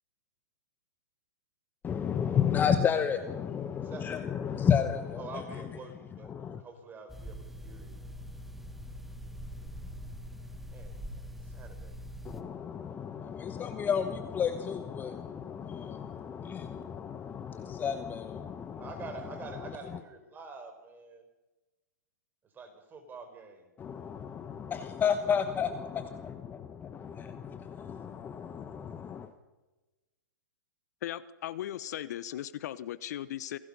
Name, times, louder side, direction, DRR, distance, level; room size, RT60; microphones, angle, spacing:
voice 1, 1.8-5.7 6.2-6.6 12.2-19.0 19.6-19.7 23.8-29.3, left 7 dB, 20° left, 10 dB, 1.1 m, -32 dB
voice 2, 5.2-6.3 6.6-8.0 10.7-12.0 18.7-21.2 22.5-23.7, right 4 dB, 20° right, 6 dB, 4.3 m, -46 dB
sound 1, 7.1-12.4, equal, ahead, 1.8 m, -43 dB
voice 3, 31.0-33.6, left 12 dB, 60° left, 17 dB, 0.9 m, -37 dB
27.5 x 17.5 x 5.5 m, 1.1 s
hypercardioid pair, 125°, 10 cm